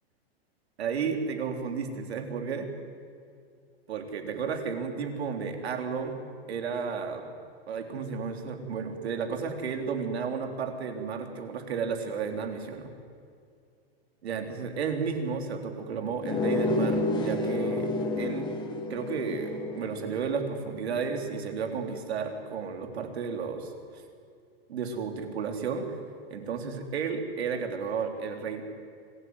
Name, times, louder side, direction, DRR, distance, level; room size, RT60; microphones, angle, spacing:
voice 1, 0.8-2.7 3.9-6.2 6.5-7.3 7.7-12.9 14.2-17.9 18.2-18.5 18.9-23.7 24.7-26.0 26.3-28.6, right 5 dB, 85° right, 5 dB, 3.8 m, -32 dB
sound 1, 16.2-21.5, left 2 dB, 15° left, 1.8 m, -31 dB
26.0 x 16.5 x 9.6 m, 2.3 s
supercardioid pair, 175°, 31 cm